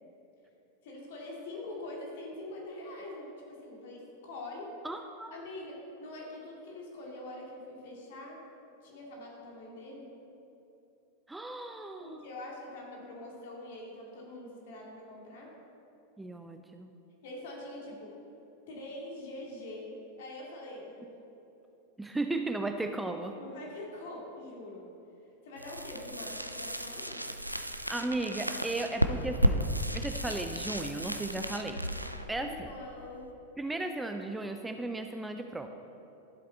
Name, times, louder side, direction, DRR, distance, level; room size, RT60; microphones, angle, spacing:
voice 1, 0.8-4.7 5.3-8.4 8.8-10.1 12.0-15.5 17.2-18.1 18.7-19.9 20.2-21.1 23.4-24.9 25.4-27.2 32.3-33.3, left 1 dB, 55° left, -2 dB, 2.4 m, -44 dB
voice 2, 4.8-5.3 11.3-12.3 16.2-16.9 22.0-23.4 27.9-31.8 32.3-32.7 33.6-35.7, right 2 dB, 5° right, 6 dB, 0.5 m, -35 dB
sound 1, 25.6-33.3, equal, 90° right, 0.4 m, -33 dB
12.5 x 7.7 x 4.2 m, 2.9 s
figure-of-eight pair, 90°, 0 cm